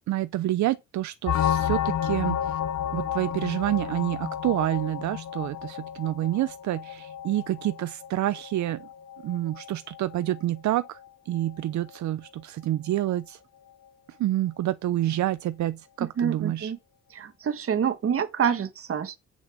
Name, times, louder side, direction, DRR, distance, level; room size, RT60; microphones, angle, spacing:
voice 1, 0.1-2.6 2.9-8.9 9.2-11.0 11.3-13.4 14.2-16.7, right 14 dB, 70° right, 0.6 m, -28 dB
sound 1, 1.3-10.6 10.8-11.1 11.3-11.5 11.8-12.0, left 10 dB, 60° left, 0.9 m, -31 dB
voice 2, 16.0-16.8 17.1-19.2, right 7 dB, 50° right, 1.5 m, -27 dB
8.4 x 6.3 x 6.2 m
cardioid pair, 90°, 30 cm